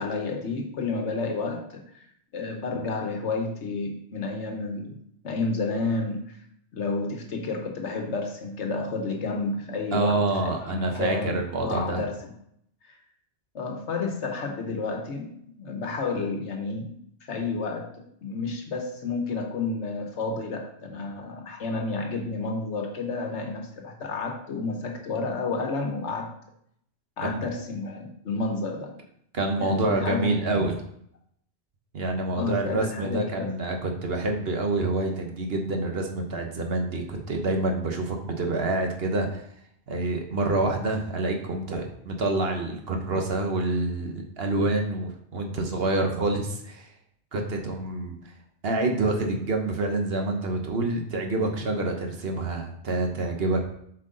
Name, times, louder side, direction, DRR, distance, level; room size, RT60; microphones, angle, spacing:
voice 1, 0.0-2.0 2.3-5.0 5.2-6.4 6.7-11.4 11.6-12.3 12.8-13.0 13.5-26.3 27.2-28.9 29.6-30.7 32.3-33.5, left 3 dB, 75° left, 3 dB, 1.2 m, -31 dB
voice 2, 9.9-12.0 27.2-27.4 29.3-30.8 31.9-39.4 39.9-46.9 47.3-48.2 48.6-53.7, right 2 dB, 55° right, 3 dB, 1.2 m, -27 dB
7.8 x 4.6 x 3.8 m, 0.70 s
omnidirectional pair, 1.2 m